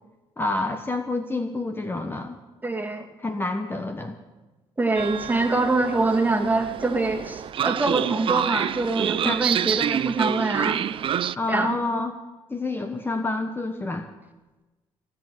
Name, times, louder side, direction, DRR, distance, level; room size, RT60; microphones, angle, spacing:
voice 1, 0.4-2.4 3.2-4.2 9.2-9.5 11.4-12.2 12.5-14.1, left 2 dB, 20° left, 7 dB, 1.2 m, -28 dB
voice 2, 2.6-3.1 4.8-10.8 11.5-11.7, right 3 dB, 15° right, 3 dB, 2.3 m, -24 dB
Train, 4.9-11.3, right 10 dB, 50° right, 0.4 m, -27 dB
16.5 x 8.4 x 9.3 m, 1.1 s
cardioid pair, 90°, 11 cm